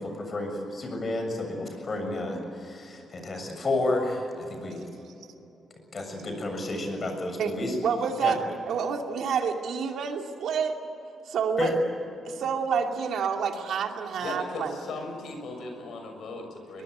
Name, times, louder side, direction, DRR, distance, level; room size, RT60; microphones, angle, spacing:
voice 1, 0.0-4.8 5.9-7.7 8.2-8.3 11.6-11.7, left 2 dB, 35° left, 4 dB, 7.1 m, -31 dB
voice 2, 7.8-8.4 8.7-10.8 11.2-11.7 12.2-14.8 16.7-16.8, right 6 dB, 75° right, 3 dB, 2.6 m, -28 dB
voice 3, 14.2-16.8, left 2 dB, 75° left, 4 dB, 6.7 m, -37 dB
22.5 x 22.5 x 9.4 m, 2.8 s
cardioid pair, 105°, 0 cm